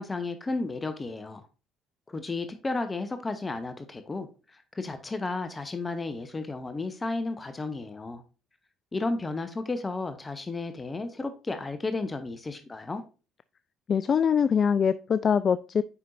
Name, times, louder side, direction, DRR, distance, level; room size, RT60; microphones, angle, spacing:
voice 1, 0.0-1.5 2.1-8.2 8.9-13.0, left 3 dB, 25° left, 0.9 m, -33 dB
voice 2, 13.9-15.8, left 7 dB, 45° left, 0.3 m, -23 dB
8.4 x 5.4 x 2.6 m
hypercardioid pair, 55°, 0 cm